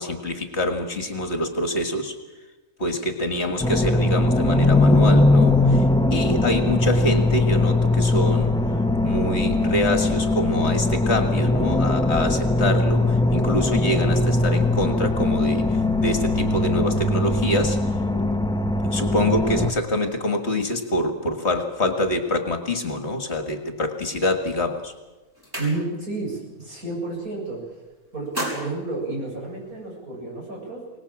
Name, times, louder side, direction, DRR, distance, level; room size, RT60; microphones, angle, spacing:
voice 1, 0.0-2.2 2.8-8.6 9.0-18.0 18.8-24.9, left 1 dB, 50° left, 6 dB, 2.2 m, -26 dB
sound 1, 3.6-19.7, left 2 dB, 5° left, 1.1 m, -20 dB
sound 2, 24.5-24.8 25.1-26.2 26.6-26.9 27.2-27.7 28.1-29.9, right 1 dB, 15° right, 6.2 m, -35 dB
voice 2, 25.6-27.6 28.1-31.0, right 2 dB, 75° right, -2 dB, 8.3 m, -31 dB
23.0 x 20.0 x 7.5 m, 1.1 s
omnidirectional pair, 1.5 m